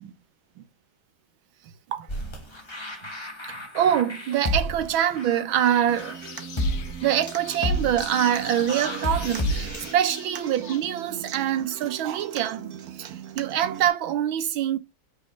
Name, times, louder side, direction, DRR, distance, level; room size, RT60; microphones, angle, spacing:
sound 1, 2.1-9.9, left 1 dB, 15° left, 1.2 m, -31 dB
voice 1, 3.5-6.2 7.0-14.8, right 10 dB, 80° right, 1.6 m, -25 dB
sound 2, 5.5-10.8, left 8 dB, 75° left, 0.7 m, -43 dB
Human voice / Acoustic guitar, 5.9-13.9, right 9 dB, 55° right, 1.2 m, -39 dB
6.3 x 5.4 x 4.3 m
omnidirectional pair, 2.2 m